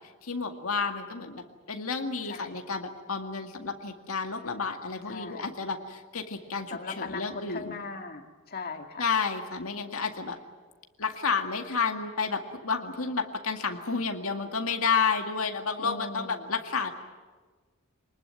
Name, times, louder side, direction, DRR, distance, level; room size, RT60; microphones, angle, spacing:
voice 1, 0.2-1.4 1.7-7.8 9.0-10.4 11.0-16.9, left 5 dB, 85° left, 4 dB, 2.1 m, -31 dB
voice 2, 2.3-2.6 5.1-5.5 6.7-9.1 15.8-16.5, left 4 dB, 45° left, 4 dB, 2.1 m, -39 dB
25.5 x 20.0 x 9.1 m, 1.4 s
head